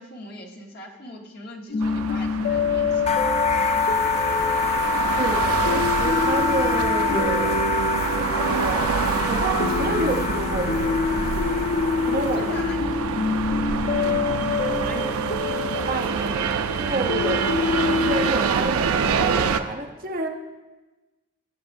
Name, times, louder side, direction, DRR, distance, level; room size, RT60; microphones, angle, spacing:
voice 1, 0.0-3.3 12.3-12.9 15.4-15.6, left 1 dB, 45° left, 1 dB, 1.2 m, -41 dB
sound 1, 1.7-18.3, left 4 dB, 90° left, 1.1 m, -27 dB
sound 2, 1.8-19.6, right 6 dB, 85° right, 0.5 m, -27 dB
sound 3, 3.1-12.8, left 4 dB, 30° left, 0.3 m, -26 dB
voice 2, 5.1-9.0 9.3-11.3 12.0-12.8 14.7-15.3 15.7-17.6 18.0-20.3, right 2 dB, 40° right, 3 dB, 0.8 m, -29 dB
18.0 x 7.4 x 2.6 m, 1.2 s
head